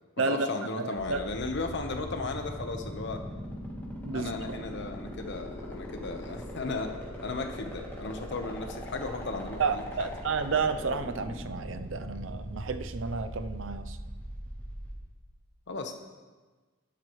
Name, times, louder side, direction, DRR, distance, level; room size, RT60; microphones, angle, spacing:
voice 1, 0.2-3.2 4.1-6.9 7.2-10.1 15.7-16.0, left 3 dB, 55° left, 5 dB, 1.1 m, -35 dB
voice 2, 0.8-1.3 4.0-4.6 9.6-14.0, right 4 dB, 65° right, 9 dB, 0.6 m, -31 dB
sound 1, 1.0-14.9, equal, 10° left, 2.5 m, -40 dB
12.0 x 12.0 x 3.2 m, 1.3 s
head